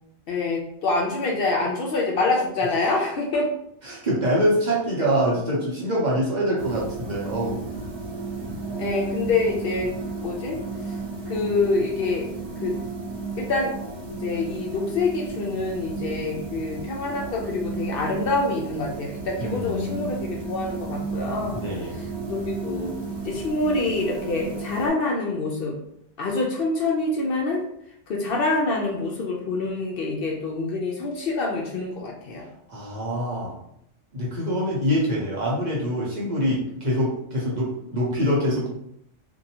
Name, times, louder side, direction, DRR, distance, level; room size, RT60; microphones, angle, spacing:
voice 1, 0.3-3.5 8.8-9.9 10.2-10.6 10.9-11.0 11.3-12.3 12.6-12.8 13.4-13.7 14.1-21.6 22.3-22.9 23.2-25.8 26.2-27.6 28.1-32.5, left 3 dB, 60° left, -1 dB, 0.7 m, -26 dB
voice 2, 3.8-7.6 19.4-20.4 21.5-22.0 32.7-33.6 34.1-38.7, equal, 45° right, -5 dB, 0.7 m, -25 dB
sound 1, 6.6-24.9, right 3 dB, 70° right, 1.0 m, -33 dB
2.6 x 2.3 x 2.7 m, 0.75 s
omnidirectional pair, 1.2 m